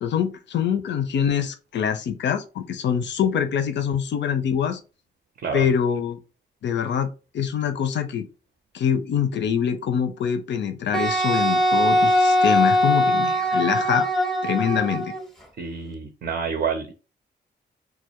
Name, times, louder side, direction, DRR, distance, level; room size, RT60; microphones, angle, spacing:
voice 1, 0.0-4.8 5.5-6.2 6.6-7.1 7.3-8.3 8.7-14.1 14.4-15.1, left 8 dB, 65° left, 0.5 m, -24 dB
Wind instrument woodwind instrument, 10.9-15.2, equal, ahead, 0.6 m, -21 dB
voice 2, 15.6-16.9, right 6 dB, 55° right, 0.5 m, -28 dB
2.2 x 2.0 x 2.8 m
cardioid pair, 55°, 20 cm